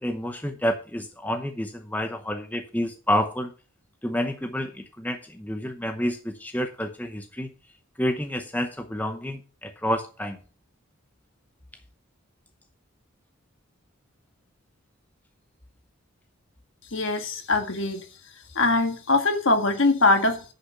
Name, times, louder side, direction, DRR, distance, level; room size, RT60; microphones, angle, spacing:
voice 1, 0.0-3.5 4.0-7.5 8.0-10.4, equal, 10° left, 0.8 m, -29 dB
voice 2, 16.9-18.0 18.6-20.5, left 2 dB, 60° left, 1.8 m, -22 dB
10.0 x 5.6 x 5.7 m
head